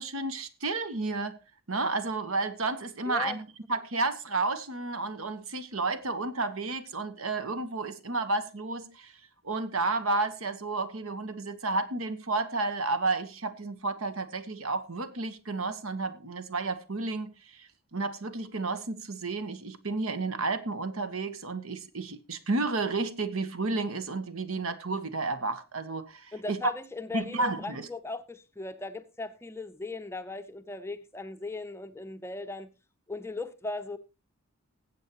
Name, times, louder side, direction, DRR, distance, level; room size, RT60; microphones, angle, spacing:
voice 1, 0.0-1.3 1.7-3.4 3.7-9.1 9.4-26.6 27.1-27.9, right 3 dB, 70° right, 1.3 m, -31 dB
voice 2, 3.1-3.4 26.3-32.7 33.1-34.0, left 3 dB, 10° left, 0.6 m, -38 dB
20.0 x 8.2 x 3.0 m
head